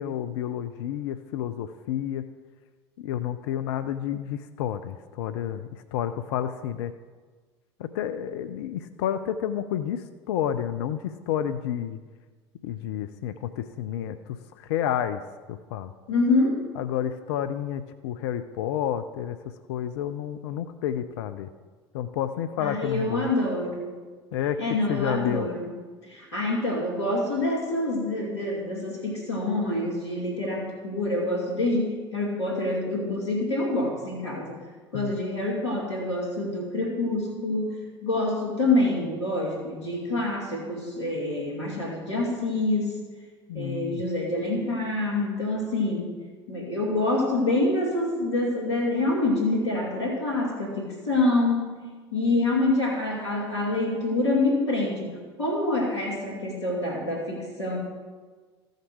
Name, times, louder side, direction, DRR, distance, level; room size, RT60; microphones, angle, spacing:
voice 1, 0.0-2.2 3.0-6.9 7.8-12.0 12.6-14.2 14.6-15.2 15.5-15.9 16.8-19.4 19.7-21.5 21.9-23.3 24.3-24.6 24.9-25.5 34.9-35.1 43.5-44.0, left 10 dB, 70° left, 10 dB, 0.5 m, -30 dB
voice 2, 16.1-16.6 22.6-23.9 24.6-25.7 26.0-34.6 34.9-43.0 43.5-46.1 46.5-51.8 52.1-57.8, left 2 dB, 90° left, -1 dB, 2.5 m, -26 dB
14.0 x 6.6 x 4.8 m, 1.4 s
hypercardioid pair, 70°, 14 cm